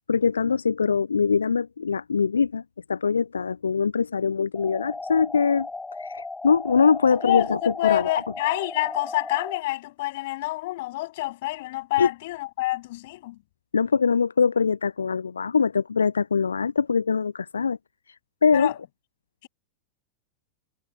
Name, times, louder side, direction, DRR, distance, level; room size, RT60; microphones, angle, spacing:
voice 1, 0.1-2.6 2.9-5.7 6.0-8.1 12.0-12.1 13.7-17.8 18.4-18.7, left 5 dB, 75° left, 0.7 m, -22 dB
sound 1, 4.5-9.6, left 3 dB, 10° left, 1.2 m, -36 dB
voice 2, 7.1-13.4 18.5-18.8 19.4-19.5, left 18 dB, 50° left, 7.3 m, -27 dB
figure-of-eight pair, 90°, 0 cm